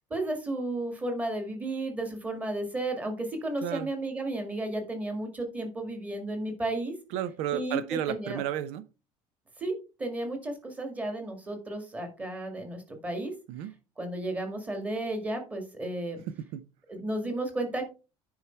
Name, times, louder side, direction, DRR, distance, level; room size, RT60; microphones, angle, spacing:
voice 1, 0.1-6.9 7.5-7.8 8.1-8.4 9.6-9.7 10.0-13.3 14.0-16.2 16.9-17.9, right 2 dB, 10° right, 1.9 m, -33 dB
voice 2, 7.1-8.9 13.5-13.7 16.3-16.7, right 11 dB, 70° right, 0.6 m, -33 dB
9.8 x 4.8 x 4.4 m
cardioid pair, 175°, 11 cm